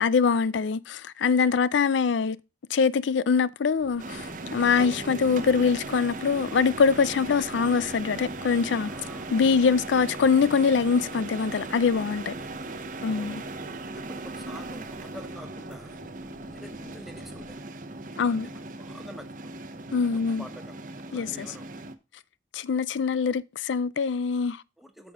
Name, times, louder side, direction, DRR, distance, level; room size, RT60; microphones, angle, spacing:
voice 1, 0.0-2.4 2.7-8.9 9.3-12.3 13.0-13.4 18.2-18.5 19.9-20.5 21.1-21.5 22.5-24.6, left 5 dB, 80° left, 0.4 m, -24 dB
sound 1, 3.8-17.6, equal, 25° left, 2.1 m, -50 dB
sound 2, 4.0-21.9, right 2 dB, 45° right, 0.9 m, -38 dB
voice 2, 8.8-9.8 11.9-12.1 13.1-13.4 13.8-16.0 16.5-17.6 18.1-19.5 20.1-20.8 21.1-21.8 24.8-25.1, equal, ahead, 1.1 m, -48 dB
8.5 x 6.7 x 3.7 m
head